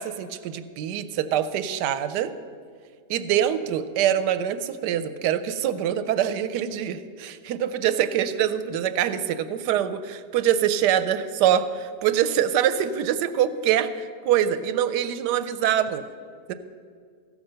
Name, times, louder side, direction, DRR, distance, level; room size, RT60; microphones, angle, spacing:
voice 1, 0.0-2.3 3.1-16.0 16.5-16.6, right 10 dB, 90° right, 11 dB, 1.2 m, -24 dB
15.0 x 6.1 x 6.6 m, 2.1 s
omnidirectional pair, 1.8 m